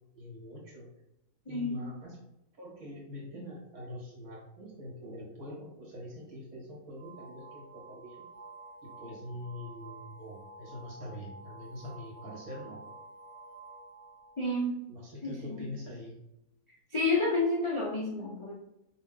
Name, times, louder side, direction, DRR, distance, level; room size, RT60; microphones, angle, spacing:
voice 1, 0.1-0.9 1.5-2.2 2.6-8.2 8.8-12.8 14.9-16.2, left 1 dB, 70° right, -3 dB, 2.0 m, -44 dB
voice 2, 1.5-1.8 14.4-14.8 15.2-15.7 16.9-18.5, left 2 dB, 40° left, -4 dB, 0.4 m, -30 dB
sound 1, 7.0-14.5, right 2 dB, 90° right, 1.3 m, -50 dB
5.1 x 2.2 x 3.9 m, 0.87 s
omnidirectional pair, 1.6 m